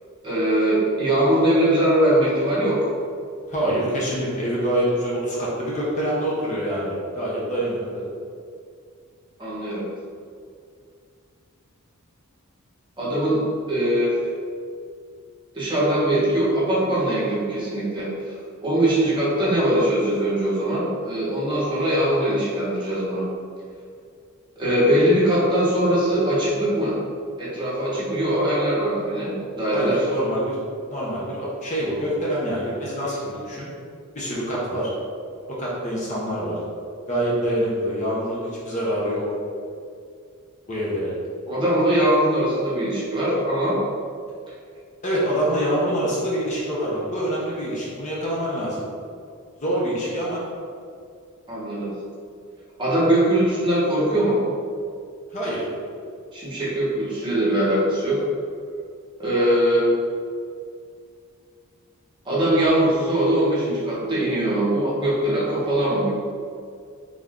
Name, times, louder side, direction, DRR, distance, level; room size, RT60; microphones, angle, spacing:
voice 1, 0.2-2.9 9.4-9.8 13.0-13.4 13.7-14.2 15.5-18.1 18.6-23.2 24.6-27.0 27.4-30.0 41.5-43.8 51.5-51.9 52.8-54.4 56.3-58.2 59.2-59.9 62.2-66.1, right 1 dB, 20° right, -8 dB, 1.1 m, -21 dB
voice 2, 3.5-8.0 29.7-30.6 30.9-33.7 34.1-34.9 35.5-36.6 37.1-39.2 40.7-41.1 45.0-48.8 49.6-50.4 55.3-55.6, equal, 35° left, -6 dB, 0.8 m, -25 dB
3.4 x 2.6 x 3.5 m, 2.3 s
head